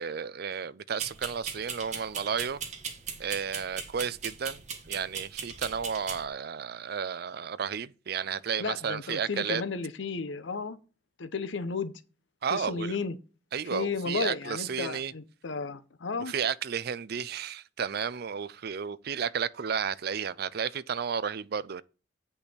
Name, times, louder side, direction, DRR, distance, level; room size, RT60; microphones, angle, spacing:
voice 1, 0.0-2.6 3.2-4.6 4.9-9.6 12.4-13.0 13.5-15.1 16.3-21.8, right 7 dB, 55° right, 0.4 m, -32 dB
sound 1, 1.0-6.2, right 6 dB, 40° right, 1.4 m, -39 dB
voice 2, 8.6-10.8 11.2-11.9 12.5-13.2 13.7-16.3, left 4 dB, 75° left, 0.8 m, -33 dB
8.3 x 5.5 x 4.4 m
head